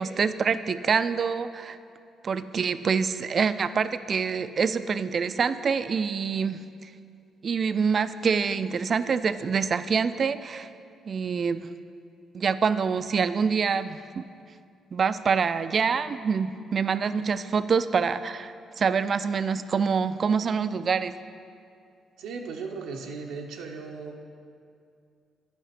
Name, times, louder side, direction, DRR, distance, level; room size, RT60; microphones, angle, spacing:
voice 1, 0.0-1.8 2.2-6.9 7.4-10.7 11.1-11.7 12.3-14.2 14.9-21.2, right 6 dB, 45° right, 13 dB, 0.3 m, -26 dB
voice 2, 22.2-24.2, right 4 dB, 90° right, 1 dB, 0.6 m, -37 dB
9.2 x 5.0 x 5.8 m, 2.4 s
cardioid pair, 90°, 0 cm